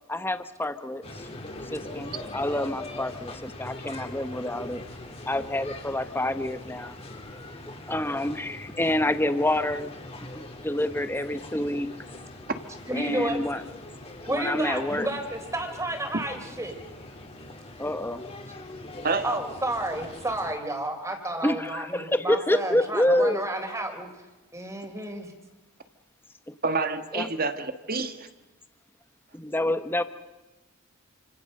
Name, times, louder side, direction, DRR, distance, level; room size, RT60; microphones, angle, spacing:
voice 1, 0.1-1.3 1.7-4.8 5.3-7.0 7.9-9.9 10.3-11.9 12.9-13.6 14.3-15.1 17.8-18.2 21.4-23.4 26.5-26.6 27.1-27.3 29.3-30.0, left 1 dB, 10° left, 10 dB, 1.1 m, -27 dB
sound 1, 1.0-20.5, left 1 dB, 25° left, 3.2 m, -42 dB
voice 2, 12.9-13.4 14.3-16.8 19.2-24.1 24.5-25.3, right 1 dB, 15° right, 5 dB, 3.8 m, -31 dB
voice 3, 19.0-19.4 26.6-28.3, right 3 dB, 40° right, 9 dB, 1.5 m, -28 dB
29.0 x 26.0 x 6.6 m, 1.1 s
head